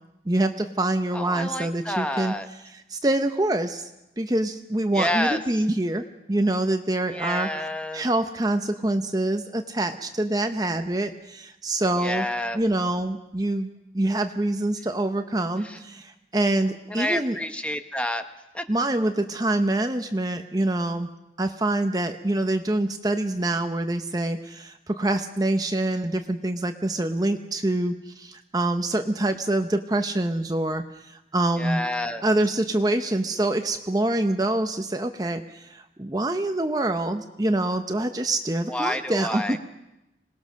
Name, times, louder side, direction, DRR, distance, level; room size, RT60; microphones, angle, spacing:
voice 1, 0.3-2.3 2.7-3.9 4.2-7.5 7.9-12.3 12.5-13.7 13.9-17.4 18.7-21.1 21.4-31.8 32.2-39.6, right 1 dB, 20° right, 7 dB, 0.8 m, -25 dB
voice 2, 1.1-2.5 4.9-5.4 7.1-8.0 12.0-12.6 15.6-15.8 16.9-18.2 18.5-18.6 31.6-32.2 38.7-39.6, left 1 dB, 5° left, 8 dB, 1.0 m, -29 dB
26.5 x 19.5 x 6.4 m, 0.93 s
head